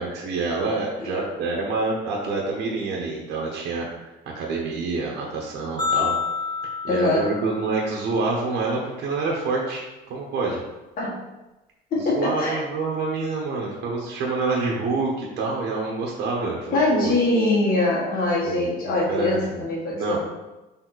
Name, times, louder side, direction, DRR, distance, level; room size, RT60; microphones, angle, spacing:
voice 1, 0.0-3.9 4.3-6.1 6.8-10.6 11.9-17.1 18.4-18.7 19.1-20.2, right 3 dB, 80° right, -1 dB, 1.2 m, -27 dB
sound 1, 5.8-8.1, left 6 dB, 25° left, 2.0 m, -28 dB
voice 2, 6.9-7.3 11.0-11.1 11.9-12.6 16.7-20.2, left 2 dB, 60° left, -4 dB, 1.9 m, -23 dB
6.4 x 3.8 x 4.1 m, 1.0 s
cardioid pair, 110°, 17 cm